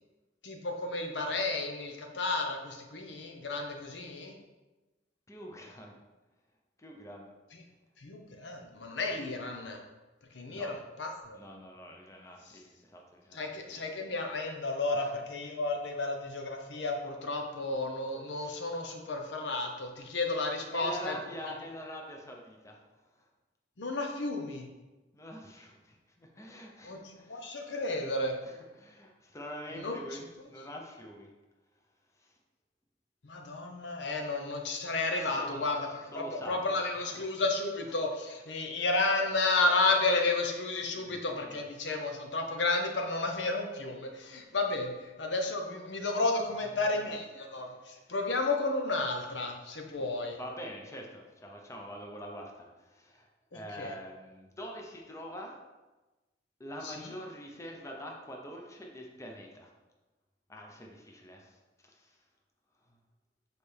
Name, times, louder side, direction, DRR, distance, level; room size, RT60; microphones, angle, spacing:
voice 1, 0.4-4.3 7.5-7.6 8.0-9.8 10.3-11.4 13.3-21.2 21.4-21.5 23.8-24.7 26.8-28.4 29.7-30.2 33.2-35.9 36.1-50.4 53.5-53.9 56.8-57.0, left 2 dB, 80° left, 3 dB, 0.8 m, -32 dB
voice 2, 5.3-5.9 6.8-7.3 10.5-10.7 11.3-13.8 14.9-15.2 18.3-18.7 20.7-22.8 23.2-23.3 25.1-27.5 28.4-31.3 32.2-32.3 35.1-35.6 36.1-37.2 40.9-41.6 44.2-44.5 46.8-47.2 47.7-47.8 50.4-55.5 56.6-59.7 60.5-61.6 61.8-62.2, equal, 15° left, 1 dB, 0.7 m, -45 dB
6.6 x 4.2 x 3.4 m, 1.1 s
head